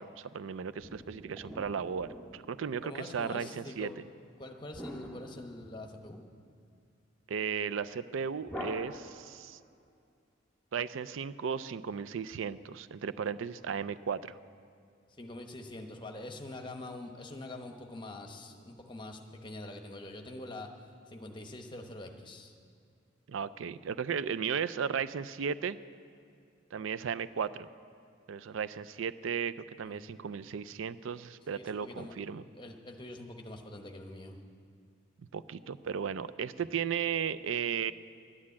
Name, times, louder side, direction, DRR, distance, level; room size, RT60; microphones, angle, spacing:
voice 1, 0.0-3.9 7.3-9.6 10.7-14.4 23.3-25.8 26.7-27.7 28.3-32.4 35.3-37.9, right 7 dB, 80° right, 15 dB, 0.4 m, -35 dB
sound 1, 0.8-2.8 4.7-6.1 8.5-9.5, equal, 5° left, 1.5 m, -45 dB
voice 2, 2.8-3.9 4.4-6.2 15.2-20.7 21.1-22.5 29.8-30.1 31.5-32.2 32.5-34.4, left 1 dB, 25° left, 4 dB, 1.0 m, -44 dB
11.5 x 9.7 x 8.5 m, 2.4 s
head